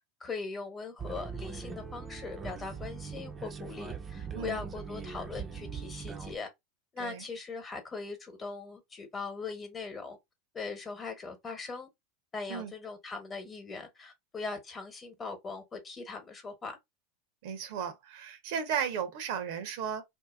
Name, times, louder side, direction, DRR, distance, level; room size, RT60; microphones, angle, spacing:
voice 1, 0.2-6.5 6.9-10.2 10.5-11.9 12.3-16.8, left 4 dB, 25° left, 1.0 m, -40 dB
sound 1, 1.0-6.4, right 6 dB, 25° right, 0.5 m, -41 dB
voice 2, 17.4-20.0, right 7 dB, 70° right, 0.7 m, -35 dB
2.7 x 2.1 x 2.4 m
hypercardioid pair, 100°, 0 cm